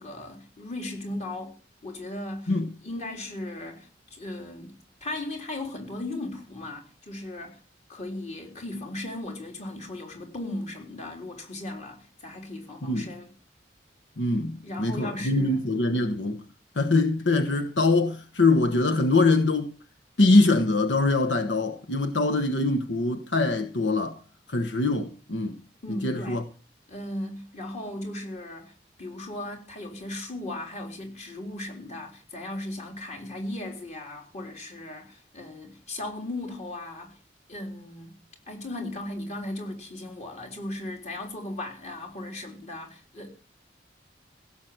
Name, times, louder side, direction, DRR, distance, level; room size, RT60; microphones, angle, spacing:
voice 1, 0.0-1.6 1.8-2.5 2.8-4.7 5.0-7.6 7.9-13.3 14.6-15.6 25.8-26.4 26.9-28.7 29.0-37.1 37.5-38.1 38.5-43.3, left 1 dB, 40° left, 3.8 m, -37 dB
voice 2, 14.2-16.4 16.7-19.7 20.2-24.2 24.5-25.6 25.9-26.4, left 2 dB, 85° left, 1.2 m, -23 dB
16.5 x 7.4 x 7.8 m
head